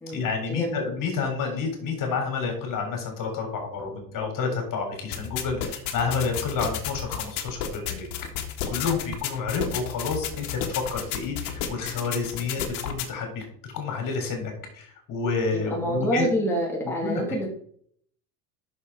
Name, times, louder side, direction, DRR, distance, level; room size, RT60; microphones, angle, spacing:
voice 1, 0.1-8.1 8.7-13.4 13.7-16.3 17.0-17.2, left 5 dB, 40° left, 4 dB, 3.8 m, -29 dB
sound 1, 5.1-13.1, left 8 dB, 60° left, 1.7 m, -33 dB
voice 2, 15.5-17.5, equal, 5° left, -3 dB, 2.7 m, -26 dB
8.5 x 6.7 x 4.8 m, 0.63 s
hypercardioid pair, 90°, 48 cm